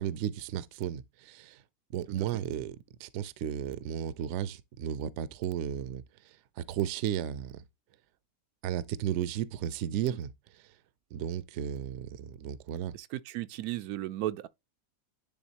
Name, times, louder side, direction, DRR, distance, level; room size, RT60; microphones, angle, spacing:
voice 1, 0.0-1.6 1.9-6.0 6.6-7.6 8.6-10.3 11.1-12.9, right 10 dB, 65° right, 0.8 m, -34 dB
voice 2, 12.9-14.5, right 14 dB, 85° right, 1.1 m, -35 dB
10.0 x 3.5 x 2.8 m
omnidirectional pair, 1.5 m